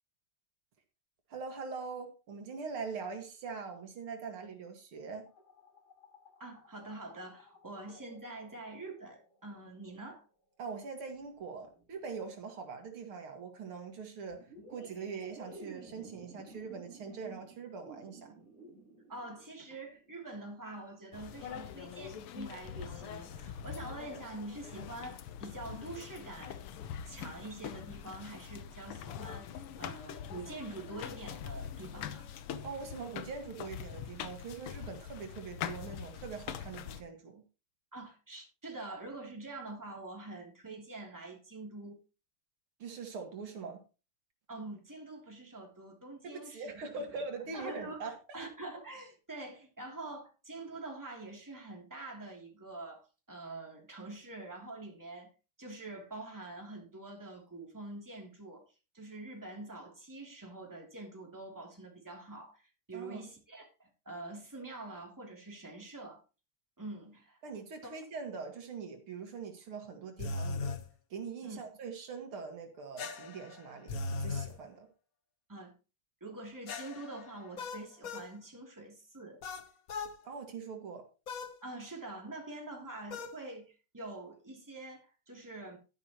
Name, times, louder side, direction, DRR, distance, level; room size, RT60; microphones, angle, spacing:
voice 1, 1.3-5.3 10.6-18.4 32.6-37.4 42.8-43.8 46.2-48.1 62.9-63.2 67.4-70.7 71.1-74.9 80.2-81.1, right 5 dB, 75° right, 2.7 m, -43 dB
sound 1, 5.3-9.7 11.1-12.4 14.3-24.1, right 2 dB, 65° left, 8.2 m, -56 dB
voice 2, 6.4-10.2 19.1-26.7 27.1-32.3 37.9-42.0 44.5-46.7 47.0-47.1 47.5-48.0 48.3-55.3 55.6-58.6 58.9-66.2 66.8-67.4 71.4-71.6 75.5-75.7 76.2-79.4 81.6-85.8, right 2 dB, 10° right, 2.9 m, -45 dB
sound 2, 21.1-37.0, left 9 dB, 90° left, 1.9 m, -43 dB
sound 3, 70.2-70.8 73.0-74.5 76.7-78.3 79.4-80.2 81.3-81.6 83.1-83.4, left 3 dB, 50° left, 1.3 m, -38 dB
12.0 x 11.0 x 3.0 m
omnidirectional pair, 2.4 m